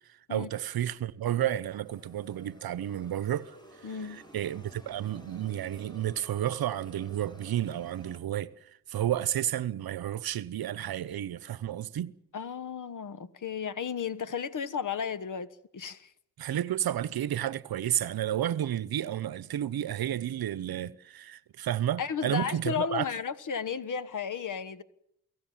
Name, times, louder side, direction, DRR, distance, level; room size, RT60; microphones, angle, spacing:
voice 1, 0.3-3.6 3.8-12.1 16.4-23.1, right 11 dB, 65° right, 1.0 m, -31 dB
sound 1, 1.8-8.2, equal, 10° left, 7.6 m, -52 dB
voice 2, 3.8-4.2 12.3-16.1 22.0-24.8, left 7 dB, 50° left, 1.4 m, -34 dB
28.5 x 18.0 x 7.5 m
supercardioid pair, 55°, 40 cm